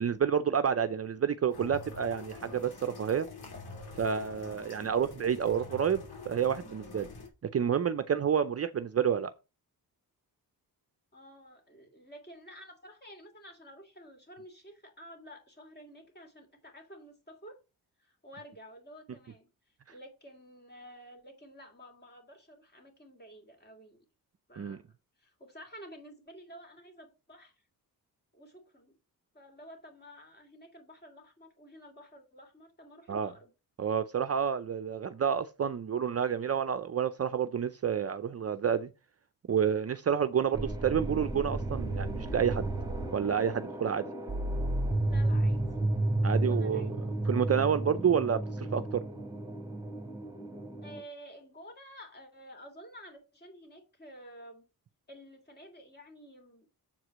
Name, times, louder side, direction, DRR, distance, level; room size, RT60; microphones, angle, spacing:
voice 1, 0.0-3.3 4.0-7.1 7.5-9.3 24.6-24.8 33.1-33.3 33.8-38.9 39.5-42.7 43.1-44.1 46.2-46.9 47.2-49.0, right 8 dB, 40° right, 0.5 m, -29 dB
sound 1, 1.5-7.3, left 3 dB, 85° left, 2.8 m, -46 dB
voice 2, 11.1-17.6 18.0-19.5 19.9-24.0 24.5-24.8 25.2-27.5 28.3-28.9 29.3-33.5 45.1-45.6 46.3-47.2 50.8-54.6 55.1-56.7, equal, 25° left, 3.1 m, -51 dB
sound 2, 40.5-51.0, right 1 dB, 10° right, 1.9 m, -32 dB
7.4 x 4.8 x 6.1 m
wide cardioid pair, 130°, 37 cm